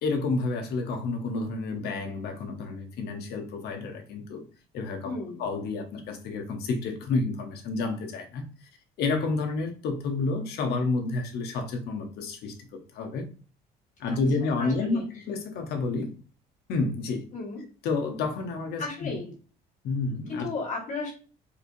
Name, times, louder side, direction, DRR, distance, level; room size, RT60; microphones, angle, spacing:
voice 1, 0.0-4.4 4.7-5.1 5.4-8.5 9.0-13.3 14.0-16.1 16.7-17.2 17.8-19.1 19.8-20.5, left 3 dB, 75° left, 4 dB, 0.8 m, -30 dB
voice 2, 5.0-5.4 14.1-15.0 17.3-17.6 18.8-19.3 20.3-21.1, left 3 dB, 45° left, -3 dB, 1.7 m, -35 dB
4.3 x 2.6 x 2.5 m, 0.39 s
cardioid pair, 110°, 17 cm